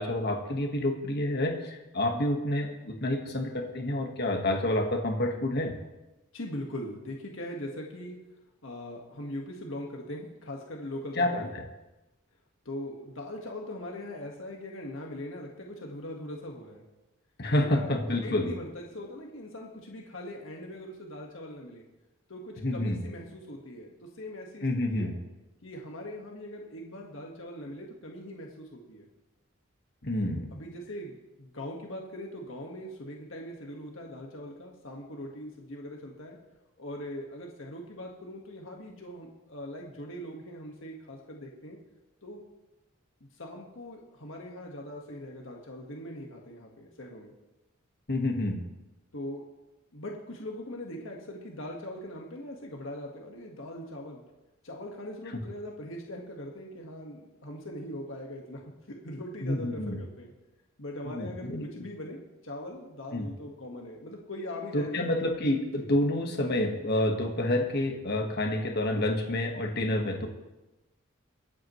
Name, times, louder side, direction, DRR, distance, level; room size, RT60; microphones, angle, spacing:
voice 1, 0.0-5.7 11.1-11.6 17.4-18.5 22.6-23.0 24.6-25.1 30.0-30.5 48.1-48.6 59.4-60.0 61.0-61.7 63.1-63.3 64.7-70.3, left 1 dB, 50° left, 3 dB, 1.5 m, -28 dB
voice 2, 6.3-8.2 8.6-11.5 12.6-16.8 17.5-21.8 22.3-25.1 25.6-29.1 30.5-36.4 36.8-41.8 42.2-42.4 43.4-47.3 49.1-49.4 49.9-54.2 54.6-58.6 59.0-60.3 60.8-65.1 65.8-65.9, left 1 dB, 70° left, 0 dB, 1.6 m, -41 dB
22.0 x 8.5 x 3.2 m, 1.0 s
head